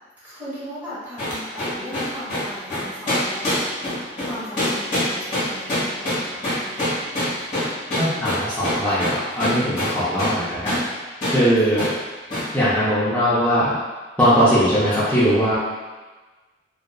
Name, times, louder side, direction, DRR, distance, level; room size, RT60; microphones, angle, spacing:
voice 1, 0.2-3.6 4.2-7.0 10.0-10.3 11.6-11.8, equal, 10° right, -12 dB, 1.0 m, -38 dB
sound 1, 1.2-10.4 10.7-10.9 11.2-11.4 11.8-12.0 12.3-12.5, left 1 dB, 40° left, 1.2 m, -24 dB
voice 2, 8.0-10.8 11.2-11.9 12.5-13.7 14.2-15.6, equal, 10° left, -12 dB, 0.5 m, -20 dB
2.6 x 2.2 x 2.2 m, 1.3 s
head